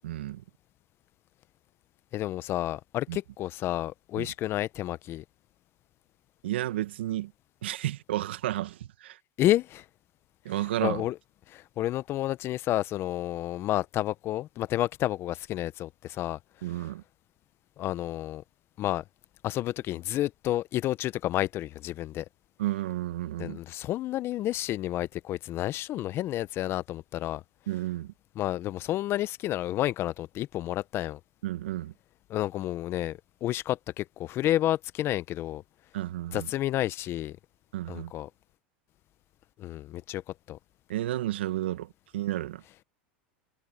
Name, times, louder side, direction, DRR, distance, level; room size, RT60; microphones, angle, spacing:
voice 1, 0.0-0.4 3.1-3.2 4.2-4.3 6.4-7.3 7.6-9.2 10.4-11.0 16.6-17.0 22.6-23.6 27.7-28.1 31.4-31.9 35.9-36.5 37.7-38.1 40.9-42.6, right 14 dB, 85° right, 1.7 m, -32 dB
voice 2, 2.1-5.2 9.4-9.8 10.8-11.2 11.5-16.4 17.8-18.4 18.8-19.0 19.4-22.2 23.4-27.4 28.4-31.2 32.3-35.6 36.3-37.4 37.9-38.3 39.6-40.2 40.5-40.6, left 14 dB, 45° left, 0.9 m, -30 dB
hypercardioid pair, 105°, 6 cm